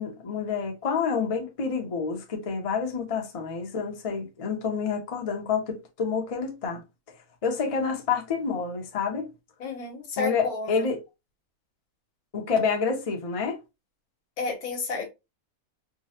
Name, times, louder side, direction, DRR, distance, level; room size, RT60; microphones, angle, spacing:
voice 1, 0.0-6.8 7.4-9.3 10.2-11.0 12.3-13.6, left 5 dB, 40° left, 0.5 m, -28 dB
voice 2, 9.6-10.9 14.4-15.1, left 4 dB, 80° left, 1.4 m, -31 dB
3.6 x 2.0 x 2.7 m
omnidirectional pair, 1.6 m